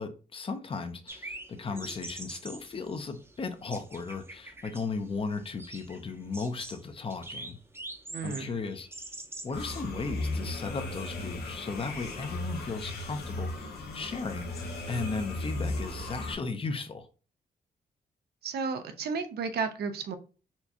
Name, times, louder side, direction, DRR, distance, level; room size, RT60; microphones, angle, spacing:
voice 1, 0.0-7.6 8.2-8.9 9.4-14.5 14.9-17.1, left 4 dB, 35° left, 0.6 m, -36 dB
sound 1, 1.1-9.6, right 2 dB, 15° right, 0.6 m, -45 dB
voice 2, 8.1-8.5 18.4-20.2, right 5 dB, 80° right, 0.6 m, -33 dB
sound 2, 9.5-16.3, left 2 dB, 90° left, 0.8 m, -36 dB
4.3 x 2.3 x 2.8 m
cardioid pair, 105°, 16 cm